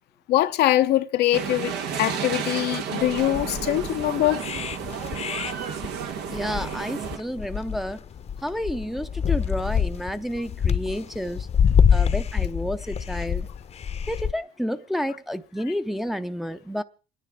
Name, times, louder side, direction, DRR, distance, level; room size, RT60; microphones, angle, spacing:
voice 1, 0.3-4.4 15.7-15.8, left 14 dB, 75° left, 0.7 m, -23 dB
sound 1, 1.3-7.2, right 7 dB, 85° right, 1.5 m, -32 dB
sound 2, 3.0-14.3, left 7 dB, 40° left, 0.8 m, -26 dB
voice 2, 6.3-8.0 8.4-11.5 11.9-13.5 14.1-16.8, equal, ahead, 0.6 m, -30 dB
28.0 x 10.0 x 3.6 m
cardioid pair, 110°, 17 cm